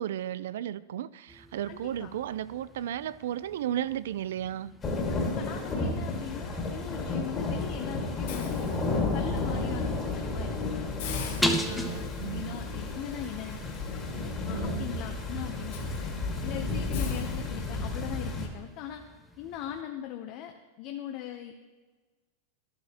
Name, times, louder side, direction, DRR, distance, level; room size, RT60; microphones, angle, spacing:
voice 1, 0.0-4.7 11.3-12.6 14.5-14.9, right 11 dB, 80° right, 18 dB, 0.3 m, -34 dB
sound 1, 1.3-19.8, equal, ahead, 0.7 m, -41 dB
voice 2, 1.7-2.1 5.1-10.9 11.7-14.1 14.5-16.1 16.4-19.0 19.4-21.6, left 11 dB, 45° left, 4 dB, 0.7 m, -40 dB
sound 2, 4.8-18.5, left 3 dB, 20° left, 1.8 m, -32 dB
Hiss, 8.3-9.4 9.9-10.1 10.4-10.5 11.0-18.1, left 7 dB, 70° left, 1.6 m, -46 dB
12.5 x 11.0 x 2.9 m, 1.3 s
supercardioid pair, 150°, 0 cm